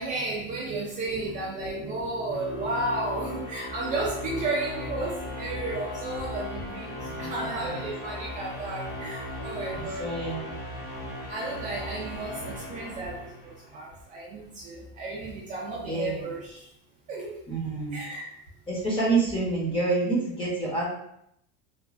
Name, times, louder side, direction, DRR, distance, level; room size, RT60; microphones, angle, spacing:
voice 1, 0.0-10.1 11.3-16.6 17.1-17.4 17.9-18.2, right 2 dB, 25° right, -4 dB, 0.4 m, -33 dB
sound 1, 0.8-13.9, left 1 dB, 55° left, 0.9 m, -37 dB
voice 2, 7.0-7.8 9.7-10.5 15.8-16.2 17.5-18.0 18.7-20.8, right 3 dB, 20° left, -4 dB, 0.9 m, -28 dB
3.0 x 2.4 x 2.4 m, 0.75 s
supercardioid pair, 145°, 29 cm